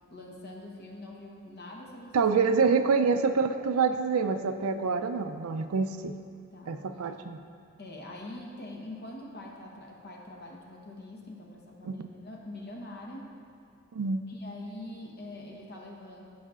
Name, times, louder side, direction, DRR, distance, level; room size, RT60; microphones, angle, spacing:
voice 1, 0.1-2.3 6.5-6.8 7.8-13.3 14.3-16.3, left 1 dB, 50° left, -1 dB, 1.0 m, -44 dB
voice 2, 2.1-6.1 6.7-7.4 11.8-12.1 13.9-14.2, right 5 dB, 85° right, 9 dB, 0.4 m, -26 dB
13.5 x 5.6 x 2.4 m, 2.4 s
head